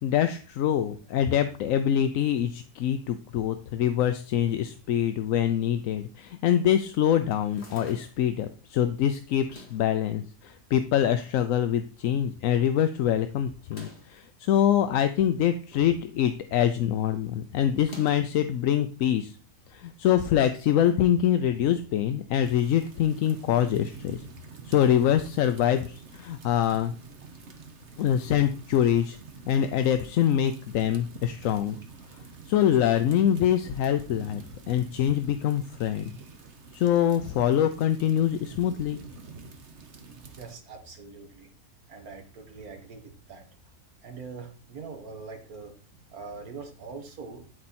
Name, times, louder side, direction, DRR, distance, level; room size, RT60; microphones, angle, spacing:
voice 1, 0.0-19.4 19.7-24.2 24.6-26.9 28.0-29.2 29.5-31.8 32.5-34.4 34.7-36.1 36.7-39.0, left 10 dB, 65° left, 9 dB, 0.9 m, -24 dB
sound 1, 7.3-8.3 9.4-9.9 10.7-11.4 11.7-11.8 12.0-12.1 13.6-14.2 15.2-16.0 16.3-16.6 17.8-18.4, left 1 dB, 45° left, 2.2 m, -48 dB
sound 2, 22.4-40.6, right 5 dB, 50° right, 1.3 m, -47 dB
voice 2, 40.3-41.5 41.9-43.5 44.0-47.4, right 4 dB, 70° right, 4 dB, 2.0 m, -43 dB
12.0 x 4.3 x 4.2 m, 0.39 s
omnidirectional pair, 1.6 m